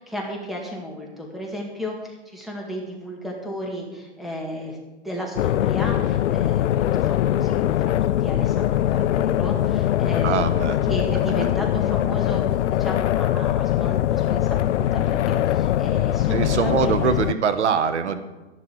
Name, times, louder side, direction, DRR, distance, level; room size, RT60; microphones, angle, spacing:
voice 1, 0.0-4.8 5.0-8.0 8.2-16.9, equal, ahead, -1 dB, 1.9 m, -34 dB
sound 1, 5.4-17.3, left 12 dB, 85° left, 0.5 m, -22 dB
voice 2, 10.2-10.8 11.4-11.5 16.3-18.2, right 7 dB, 75° right, 11 dB, 1.2 m, -23 dB
12.5 x 10.5 x 4.6 m, 1.1 s
hypercardioid pair, 150°, 35 cm